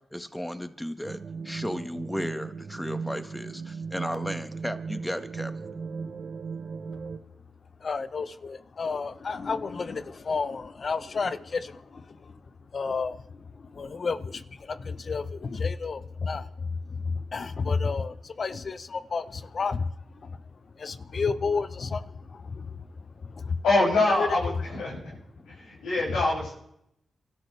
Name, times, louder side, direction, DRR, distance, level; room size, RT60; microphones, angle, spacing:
voice 1, 0.1-5.5, equal, 5° left, 1.6 m, -34 dB
sound 1, 1.0-7.2, right 5 dB, 60° right, 1.1 m, -37 dB
voice 2, 7.8-23.6 24.1-24.3 25.4-26.2, left 4 dB, 60° left, 1.0 m, -32 dB
voice 3, 23.6-25.2 25.4-26.5, left 2 dB, 90° left, 8.0 m, -25 dB
29.0 x 12.5 x 3.5 m
supercardioid pair, 45°, 0 cm